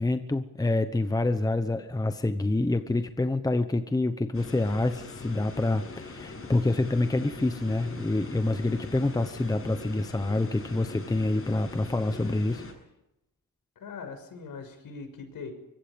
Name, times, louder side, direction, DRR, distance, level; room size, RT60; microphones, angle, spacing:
voice 1, 0.0-12.6, left 2 dB, 10° left, 9 dB, 1.0 m, -27 dB
sound 1, 4.3-12.7, left 3 dB, 35° left, 7.0 m, -42 dB
voice 2, 13.8-15.5, left 5 dB, 60° left, 7 dB, 6.4 m, -41 dB
24.5 x 22.5 x 5.3 m, 0.88 s
cardioid pair, 130°, 38 cm